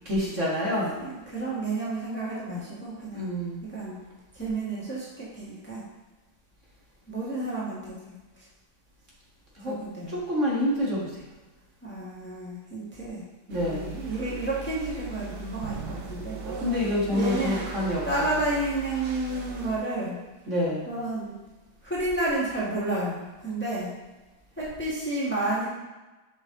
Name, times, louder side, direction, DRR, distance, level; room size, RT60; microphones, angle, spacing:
voice 1, 0.1-0.9 3.1-3.6 9.6-9.7 10.1-11.1 13.5-14.0 16.4-18.0 20.5-20.9, left 1 dB, 50° right, -6 dB, 2.1 m, -27 dB
voice 2, 0.9-3.3 3.6-4.0 4.3-5.8 7.1-8.5 9.6-10.2 11.8-13.2 13.5-16.6 16.9-17.7 18.0-20.2 20.9-21.3 21.8-23.9 24.6-25.7, right 2 dB, 5° left, -7 dB, 1.4 m, -31 dB
sound 1, 13.5-19.8, right 5 dB, 75° right, 1.3 m, -39 dB
6.4 x 5.5 x 3.7 m, 1.1 s
omnidirectional pair, 1.7 m